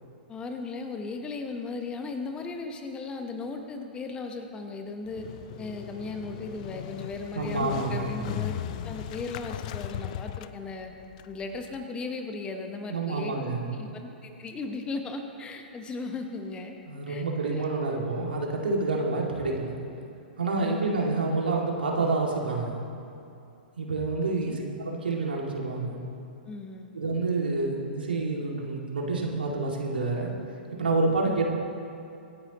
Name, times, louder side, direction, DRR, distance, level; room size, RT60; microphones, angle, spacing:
voice 1, 0.3-5.2 5.6-8.6 8.8-10.9 11.3-16.8 17.1-17.6 20.6-21.0 24.4-24.6 26.5-26.9 31.2-31.4, left 3 dB, 15° left, 5 dB, 1.1 m, -37 dB
Motorcycle, 5.1-11.8, left 12 dB, 45° left, 0.4 m, -38 dB
voice 2, 7.3-8.3 12.9-13.8 16.9-19.7 20.4-22.8 23.8-26.0 26.9-30.3 30.7-31.5, right 3 dB, 70° right, -1 dB, 2.4 m, -28 dB
25.0 x 10.0 x 3.0 m, 2.7 s
figure-of-eight pair, 110°, 5 cm